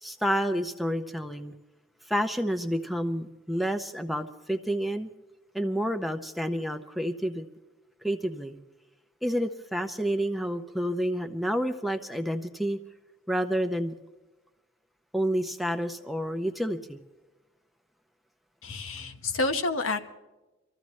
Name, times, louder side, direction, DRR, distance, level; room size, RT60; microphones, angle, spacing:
voice 1, 0.0-1.5 2.1-5.1 5.5-7.5 8.0-8.6 9.2-12.8 13.3-13.9 15.1-17.0, equal, ahead, 6 dB, 0.6 m, -29 dB
voice 2, 18.6-20.1, left 3 dB, 90° left, 5 dB, 1.1 m, -29 dB
24.5 x 14.5 x 3.2 m, 1.1 s
head